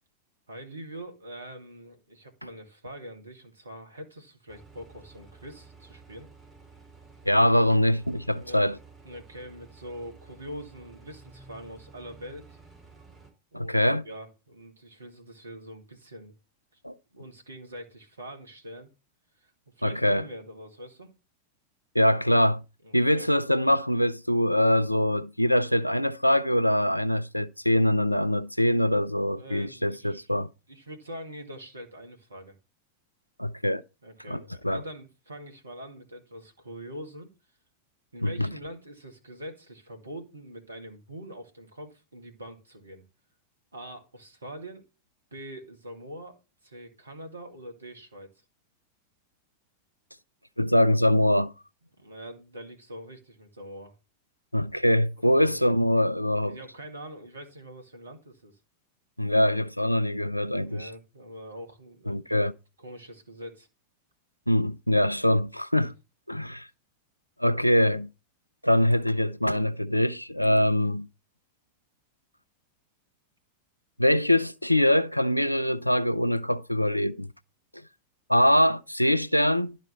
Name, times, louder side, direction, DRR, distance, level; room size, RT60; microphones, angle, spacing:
voice 1, 0.5-6.3 8.3-8.7 9.0-12.6 13.5-16.3 16.7-16.8 17.1-18.9 19.4-19.5 19.8-21.1 22.8-23.3 29.4-30.3 30.7-32.6 34.0-37.3 38.1-43.1 43.7-44.8 45.3-46.4 46.6-48.3 52.0-53.9 55.2-55.7 56.4-58.6 60.6-62.5 62.8-63.7 65.7-65.9 70.4-70.6, equal, 75° right, 1.8 m, -43 dB
sound 1, 4.5-13.3, right 4 dB, 10° right, 3.5 m, -52 dB
voice 2, 7.3-8.8 13.5-14.0 16.8-16.9 19.8-20.2 21.9-22.6 22.9-30.5 33.4-33.8 34.3-34.8 38.2-38.5 50.6-51.5 54.5-56.6 59.2-60.9 62.1-62.5 64.5-65.9 66.3-66.7 67.4-68.1 68.6-71.0 74.0-77.3 78.3-79.8, left 1 dB, 90° left, 0.4 m, -23 dB
11.0 x 4.1 x 5.6 m
figure-of-eight pair, 90°, 0 cm